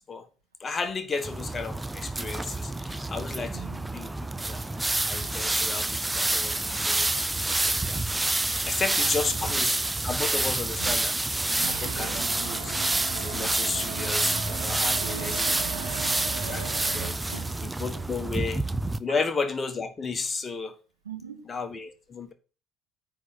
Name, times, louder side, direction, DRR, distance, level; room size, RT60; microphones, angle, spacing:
voice 1, 0.6-4.6 5.1-8.0 8.7-11.1 11.6-12.8 13.1-15.5 16.5-17.2 17.6-18.6 19.0-20.7 21.5-22.3, left 4 dB, 30° left, 1.6 m, -33 dB
sound 1, 1.2-19.0, right 2 dB, 10° right, 0.7 m, -28 dB
voice 2, 3.5-3.9 9.0-9.6 10.8-11.1 14.7-16.1 17.3-17.6 19.1-19.2 21.0-21.5, right 7 dB, 85° right, 1.6 m, -43 dB
sound 2, 11.6-17.1, right 9 dB, 70° right, 1.0 m, -38 dB
9.4 x 3.9 x 6.7 m
figure-of-eight pair, 55°, 0 cm